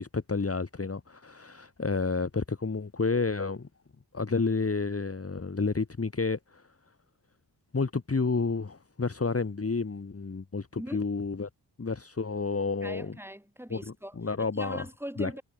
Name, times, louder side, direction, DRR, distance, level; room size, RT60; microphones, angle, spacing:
voice 1, 0.0-3.7 4.1-6.6 7.7-11.5 11.8-13.2 13.7-14.9 15.2-15.3, left 4 dB, 35° left, 1.8 m, -30 dB
voice 2, 12.8-15.4, equal, 5° right, 7.6 m, -41 dB
cardioid pair, 50°, 42 cm